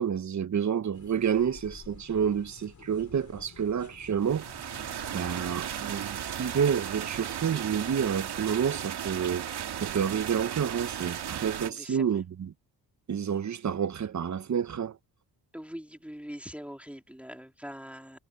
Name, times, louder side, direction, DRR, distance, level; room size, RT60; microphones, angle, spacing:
voice 1, 0.0-4.5 5.1-9.5 9.8-12.5 13.1-15.0, right 7 dB, 45° right, 1.0 m, -29 dB
sound 1, 0.9-5.5, left 5 dB, 45° left, 5.1 m, -50 dB
sound 2, 4.2-11.7, right 9 dB, 70° right, 2.3 m, -35 dB
voice 2, 11.7-12.2 15.5-18.2, equal, 5° right, 3.5 m, -43 dB
cardioid pair, 100°, 41 cm